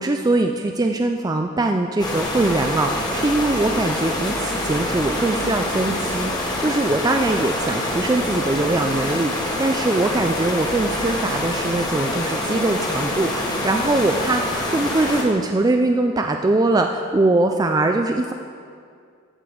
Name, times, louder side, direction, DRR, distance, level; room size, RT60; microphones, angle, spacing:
voice 1, 0.0-9.3 9.6-18.3, right 2 dB, 15° right, 4 dB, 0.3 m, -22 dB
sound 1, 2.0-15.2, left 1 dB, 20° left, 1.3 m, -25 dB
14.5 x 6.7 x 5.2 m, 2.3 s
head